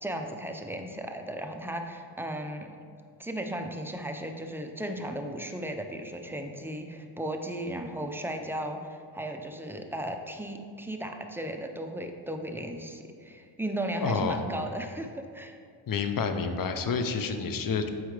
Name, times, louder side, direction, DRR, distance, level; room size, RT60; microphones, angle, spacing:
voice 1, 0.0-2.7 3.2-15.6, right 1 dB, 5° right, 4 dB, 0.5 m, -35 dB
voice 2, 14.0-14.5 15.9-17.9, left 5 dB, 45° left, 7 dB, 0.7 m, -29 dB
7.9 x 4.6 x 3.3 m, 2.2 s
cardioid pair, 75°, 50 cm